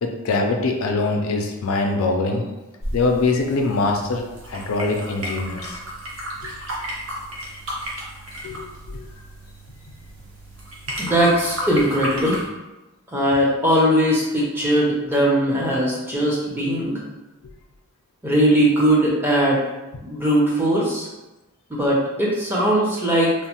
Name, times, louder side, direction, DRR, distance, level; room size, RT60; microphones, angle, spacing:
voice 1, 0.0-2.4 2.9-5.8 8.4-8.7, left 3 dB, 70° left, 2 dB, 0.4 m, -23 dB
sound 1, 2.8-12.5, equal, 60° right, 0.7 m, -33 dB
voice 2, 11.0-12.4 13.1-17.0 18.2-19.6 20.0-21.1 21.7-23.3, equal, 10° right, -6 dB, 0.5 m, -19 dB
3.0 x 2.0 x 2.8 m, 1.0 s
head